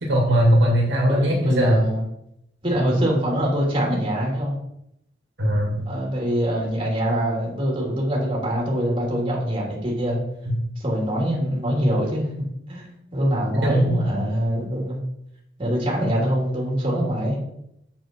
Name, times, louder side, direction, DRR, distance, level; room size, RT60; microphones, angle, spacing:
voice 1, 0.0-1.9 5.4-5.8 13.6-14.0, equal, 65° right, -1 dB, 2.1 m, -19 dB
voice 2, 1.0-2.0 2.6-4.5 5.8-10.2 10.8-12.2 12.7-15.0 15.6-17.4, equal, 30° right, -3 dB, 2.8 m, -24 dB
7.1 x 7.1 x 4.4 m, 0.77 s
head